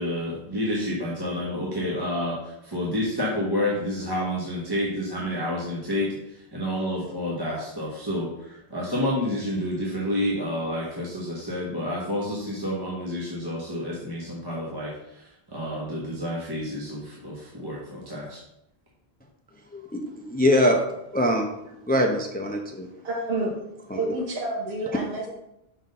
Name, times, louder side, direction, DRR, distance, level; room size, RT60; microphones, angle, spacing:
voice 1, 0.0-18.4, left 1 dB, 25° right, -5 dB, 1.0 m, -29 dB
voice 2, 19.7-20.8 21.1-21.5 21.8-22.9 23.9-24.1, left 1 dB, 10° left, 2 dB, 0.5 m, -23 dB
voice 3, 23.0-23.5 23.9-25.3, right 2 dB, 70° right, -2 dB, 1.2 m, -29 dB
5.9 x 3.9 x 5.3 m, 0.85 s
omnidirectional pair, 1.1 m